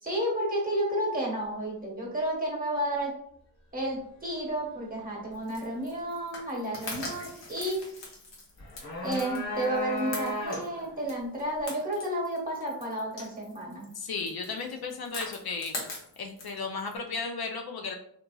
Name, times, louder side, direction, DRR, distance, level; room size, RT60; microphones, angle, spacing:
voice 1, 0.0-3.1 3.7-7.8 9.0-13.9, right 1 dB, 20° right, -2 dB, 1.2 m, -31 dB
sound 1, 5.3-17.0, left 2 dB, 85° left, 0.9 m, -42 dB
sound 2, 8.6-10.9, left 1 dB, 40° left, 1.0 m, -34 dB
voice 2, 13.9-15.8 16.2-18.0, left 4 dB, 60° left, 3 dB, 0.5 m, -34 dB
2.7 x 2.6 x 2.3 m, 0.68 s
cardioid pair, 50°, 42 cm